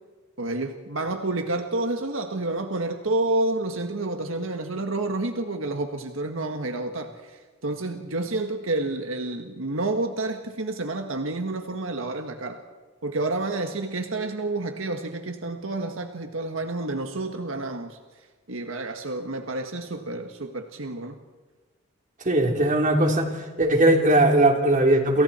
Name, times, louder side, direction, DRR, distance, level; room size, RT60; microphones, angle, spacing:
voice 1, 0.4-12.6 13.0-18.0 18.5-21.2, right 2 dB, 75° right, 5 dB, 1.6 m, -29 dB
voice 2, 22.3-23.3 23.6-25.2, right 1 dB, 40° right, 2 dB, 3.7 m, -19 dB
29.0 x 28.0 x 4.4 m, 1.4 s
head